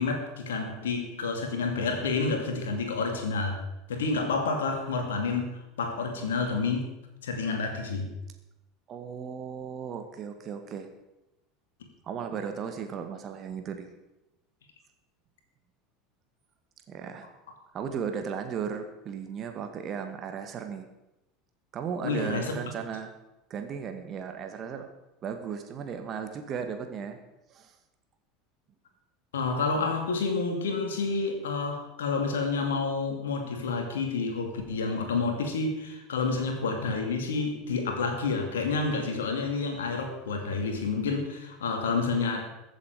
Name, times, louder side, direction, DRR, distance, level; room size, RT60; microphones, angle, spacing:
voice 1, 0.0-3.6 3.9-6.9 7.2-8.1 22.0-22.6 29.3-42.5, left 4 dB, 70° left, 4 dB, 2.5 m, -29 dB
voice 2, 8.9-10.9 12.0-13.9 16.9-17.3 17.7-20.9 21.7-23.1 23.5-24.9 25.2-27.2 27.5-27.7, right 7 dB, 35° right, 7 dB, 2.0 m, -36 dB
22.5 x 7.7 x 5.0 m, 0.94 s
figure-of-eight pair, 75°, 0 cm